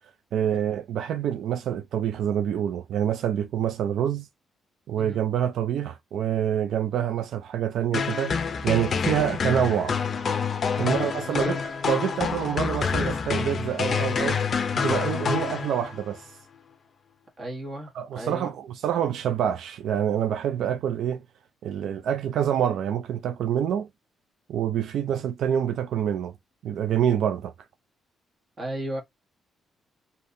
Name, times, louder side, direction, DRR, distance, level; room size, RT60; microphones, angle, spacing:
voice 1, 0.3-4.3 4.9-8.4 8.6-10.0 10.8-11.6 11.8-14.4 14.8-16.3 17.9-21.2 21.6-23.9 24.5-26.3 26.6-27.5, right 9 dB, 75° right, 0.3 m, -26 dB
sound 1, 7.9-16.1, left 6 dB, 45° left, 0.5 m, -27 dB
voice 2, 10.8-11.5 17.4-18.5 28.6-29.0, right 1 dB, 30° right, 1.3 m, -35 dB
3.5 x 2.7 x 2.6 m
cardioid pair, 135°, 0 cm